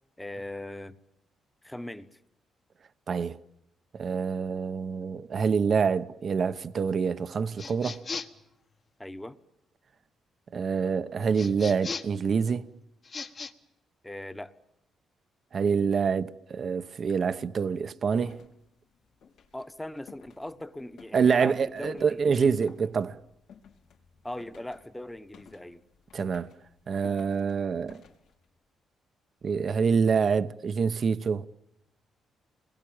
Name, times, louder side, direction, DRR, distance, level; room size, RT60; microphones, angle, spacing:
voice 1, 0.2-1.0 1.6-2.2 9.0-9.4 14.0-14.5 19.5-22.5 24.2-25.8, left 1 dB, 10° left, 1.2 m, -39 dB
voice 2, 3.1-3.4 3.9-8.1 10.5-12.7 15.5-18.5 21.1-23.2 26.1-26.5 26.9-28.0 29.4-31.5, right 6 dB, 50° right, 0.9 m, -26 dB
sound 1, 7.6-8.5 11.3-12.2 13.0-13.5, left 4 dB, 40° left, 1.5 m, -37 dB
sound 2, 18.0-28.6, left 6 dB, 85° left, 3.7 m, -56 dB
28.5 x 22.0 x 8.9 m
cardioid pair, 100°, 0 cm